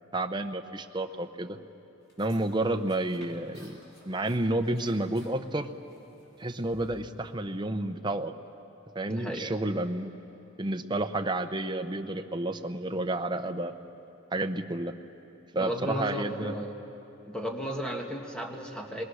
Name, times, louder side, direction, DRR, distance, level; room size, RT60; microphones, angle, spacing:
voice 1, 0.1-1.6 2.2-3.8 4.1-5.7 6.4-8.3 8.9-10.1 10.6-13.7 14.3-14.9 15.5-16.5, right 2 dB, 25° right, 6 dB, 0.8 m, -30 dB
sound 1, 2.0-7.3, left 1 dB, 65° left, 6.5 m, -57 dB
voice 2, 9.1-9.5 15.6-16.8 17.3-19.0, equal, 5° left, 1 dB, 1.8 m, -34 dB
27.0 x 22.0 x 6.5 m, 2.9 s
head